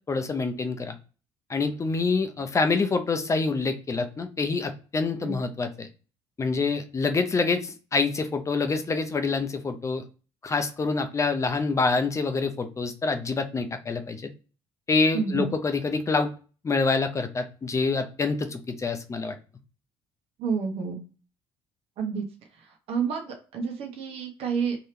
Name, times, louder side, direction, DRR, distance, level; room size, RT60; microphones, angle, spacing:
voice 1, 0.1-0.9 1.5-5.9 6.4-10.0 10.4-14.2 14.9-16.3 16.6-19.3, left 4 dB, 30° left, 7 dB, 0.7 m, -26 dB
voice 2, 15.1-15.5 20.4-21.0 22.0-22.2 22.9-24.8, right 5 dB, 65° right, 2 dB, 1.3 m, -29 dB
4.6 x 3.0 x 3.4 m, 0.35 s
supercardioid pair, 80°, 11 cm